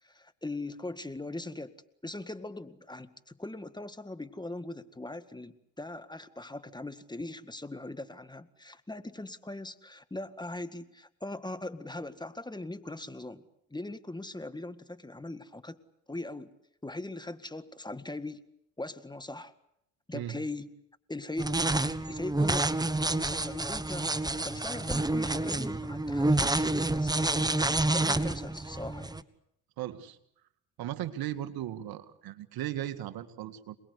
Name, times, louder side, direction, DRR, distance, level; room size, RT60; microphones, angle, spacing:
voice 1, 0.0-1.7 2.0-13.4 13.7-15.8 16.1-16.5 16.8-18.4 18.8-19.5 20.1-20.7 21.1-21.7 22.0-22.6 23.1-27.6 27.9-29.2, left 2 dB, 10° left, 11 dB, 1.8 m, -40 dB
sound 1, 21.4-29.2, right 2 dB, 10° right, 1.3 m, -28 dB
voice 2, 29.8-30.2 30.8-33.8, right 12 dB, 65° right, 10 dB, 2.0 m, -37 dB
27.5 x 20.5 x 8.3 m, 0.76 s
supercardioid pair, 70°, 39 cm